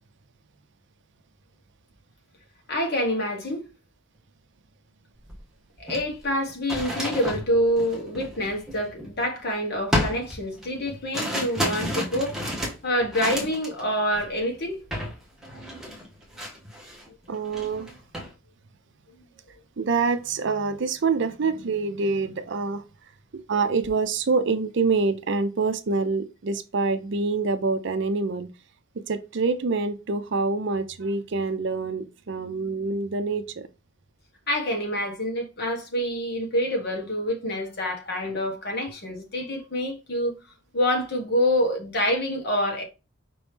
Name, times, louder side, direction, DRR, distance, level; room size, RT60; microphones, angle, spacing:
voice 1, 2.7-3.7 5.8-12.4 12.8-14.8 34.5-40.3 40.7-42.8, equal, 50° left, 1.4 m, -26 dB
sound 1, 5.3-5.4 5.8-9.4 9.9-13.8 14.1-14.4 14.9-15.2 15.4-17.1 17.4-18.3, equal, ahead, 1.1 m, -31 dB
voice 2, 17.3-17.9 19.8-22.8 23.3-28.5 29.0-33.7, right 4 dB, 55° right, 0.5 m, -26 dB
5.2 x 3.0 x 3.3 m
head